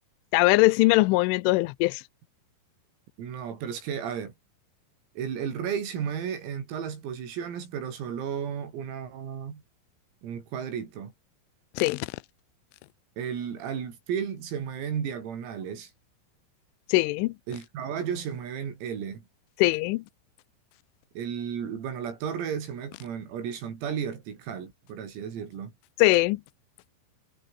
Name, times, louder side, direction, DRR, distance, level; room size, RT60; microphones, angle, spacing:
voice 1, 0.3-2.0 11.8-12.1 16.9-17.3 19.6-20.0 26.0-26.4, left 22 dB, 85° left, 3.0 m, -21 dB
voice 2, 3.2-4.3 5.2-9.6 10.2-11.1 13.2-15.9 17.5-19.3 21.2-25.7, right 8 dB, 90° right, 7.3 m, -33 dB
omnidirectional pair, 6.0 m